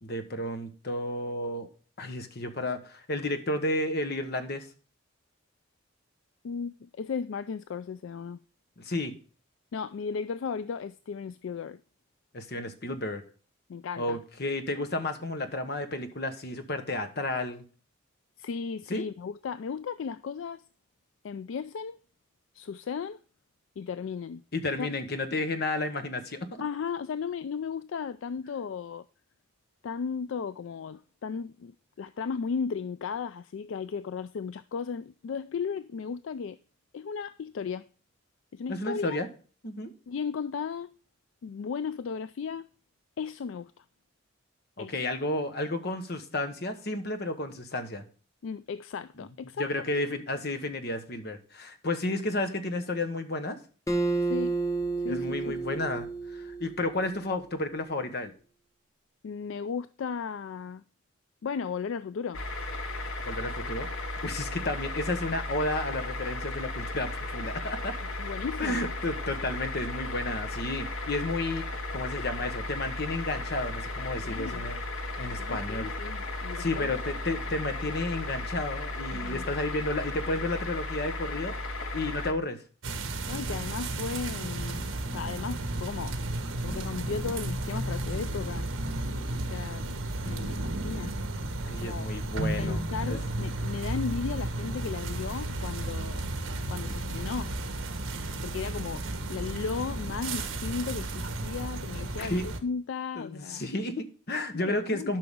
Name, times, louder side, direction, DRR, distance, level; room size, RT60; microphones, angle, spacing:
voice 1, 0.0-1.7 2.0-4.7 8.8-9.2 12.3-13.2 14.0-17.6 18.9-19.1 24.5-26.5 38.7-39.3 39.6-39.9 44.8-48.0 49.6-53.6 55.1-58.3 63.2-67.9 68.6-74.8 75.2-75.9 76.6-81.5 81.9-82.6 91.6-93.2 102.2-102.5 103.1-105.2, left 2 dB, 50° left, 1.2 m, -32 dB
voice 2, 6.4-8.4 9.7-11.8 13.7-14.2 18.4-20.6 21.2-22.0 22.5-23.2 23.8-24.4 24.8-24.9 26.6-29.0 29.8-36.6 36.9-37.9 38.5-39.2 40.1-40.9 41.4-42.7 43.2-43.8 44.8-45.0 48.4-49.7 54.3-54.6 55.0-55.6 59.2-60.8 61.4-62.4 68.0-68.8 74.2-74.6 75.4-76.9 79.1-79.5 83.3-86.1 86.6-88.7 89.5-90.0 90.2-91.2 91.8-92.1 92.6-96.3 96.7-97.5 98.4-99.0 99.3-103.7 104.5-105.2, left 6 dB, 70° left, 0.3 m, -35 dB
Acoustic guitar, 53.9-57.3, right 3 dB, 15° left, 0.9 m, -31 dB
sound 1, 62.3-82.3, left 2 dB, 85° left, 1.2 m, -35 dB
sound 2, 82.8-102.6, right 2 dB, 75° right, 1.3 m, -33 dB
12.0 x 5.8 x 3.6 m
head